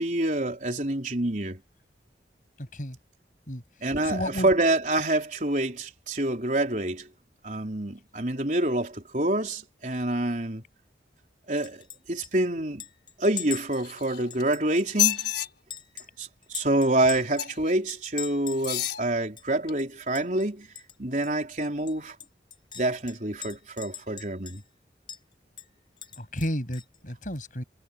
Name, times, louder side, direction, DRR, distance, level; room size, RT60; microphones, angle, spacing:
voice 1, 0.0-1.6 3.8-7.1 7.4-10.6 11.5-12.8 13.2-15.3 16.2-20.7 21.0-22.2 22.7-24.6, right 1 dB, 45° right, 4.2 m, -27 dB
voice 2, 2.6-3.0 3.5-3.6 4.0-4.5 26.2-27.6, equal, 45° left, 7.3 m, -32 dB
Chink clink, 11.6-12.0 12.2-12.3 12.8-15.3 15.7-17.4 17.9-19.0 19.4-19.5 19.8-20.5 20.8-20.9 21.2-21.3 21.9-24.8 25.1-25.2 25.6-27.0, left 8 dB, 25° left, 4.0 m, -42 dB
sound 1, 13.7-14.4 14.9-15.5 17.4-17.7 18.6-19.0 19.7-19.8, left 14 dB, 70° left, 4.2 m, -28 dB
head